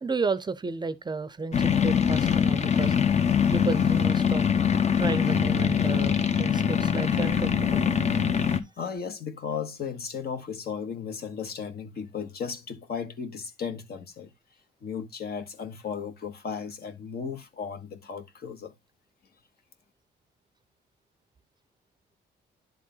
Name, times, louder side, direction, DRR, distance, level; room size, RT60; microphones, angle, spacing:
voice 1, 0.0-2.9 3.5-4.6 4.9-8.0, right 4 dB, 25° right, 0.6 m, -32 dB
sound 1, 1.5-8.6, left 7 dB, 35° left, 0.9 m, -23 dB
voice 2, 8.4-14.3 14.8-18.7, left 6 dB, 55° left, 1.4 m, -35 dB
10.5 x 3.8 x 3.8 m
cardioid pair, 100°, 19 cm